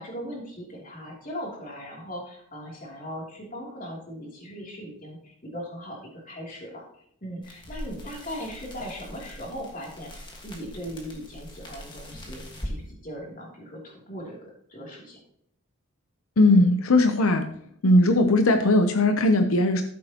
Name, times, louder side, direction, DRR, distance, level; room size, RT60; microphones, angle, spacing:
voice 1, 0.0-6.0 6.3-6.8 7.2-14.4 14.7-15.2, equal, 40° left, -2 dB, 2.9 m, -38 dB
sound 1, 7.4-12.8, equal, 20° left, 1.6 m, -41 dB
voice 2, 16.4-17.5 17.8-19.8, left 2 dB, 80° left, 7 dB, 0.8 m, -19 dB
13.0 x 7.5 x 2.9 m, 0.69 s
head